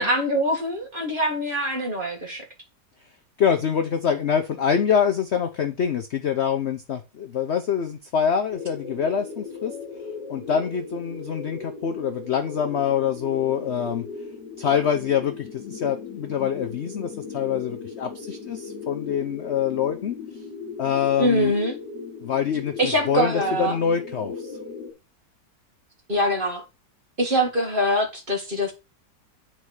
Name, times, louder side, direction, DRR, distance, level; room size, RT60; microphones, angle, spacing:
voice 1, 0.0-2.4 21.2-21.8 22.8-23.8 26.1-26.6 27.2-28.7, equal, 30° right, 1.9 m, -23 dB
voice 2, 3.4-9.7 10.3-14.0 14.6-20.2 20.8-21.6 22.2-24.6, left 7 dB, 55° left, 0.8 m, -25 dB
sound 1, 8.5-24.9, left 5 dB, 75° left, 2.2 m, -37 dB
9.2 x 4.2 x 4.8 m
omnidirectional pair, 1.8 m